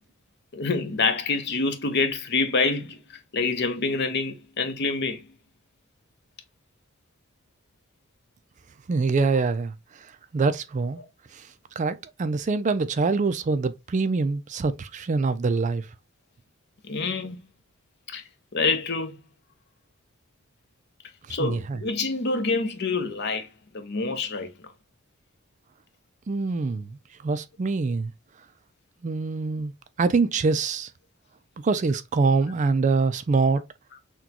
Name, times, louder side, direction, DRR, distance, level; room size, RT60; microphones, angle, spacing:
voice 1, 0.5-3.0 3.3-5.3 11.0-11.1 16.9-17.4 18.1-18.2 18.5-19.2 21.3-23.5 23.7-24.5, left 4 dB, 55° left, 0.8 m, -26 dB
voice 2, 8.9-9.7 10.3-11.0 11.8-15.8 21.4-21.8 26.3-27.0 27.2-28.1 29.0-29.7 30.0-30.9 31.6-33.6, right 4 dB, 35° right, 0.4 m, -24 dB
6.0 x 2.2 x 2.8 m
head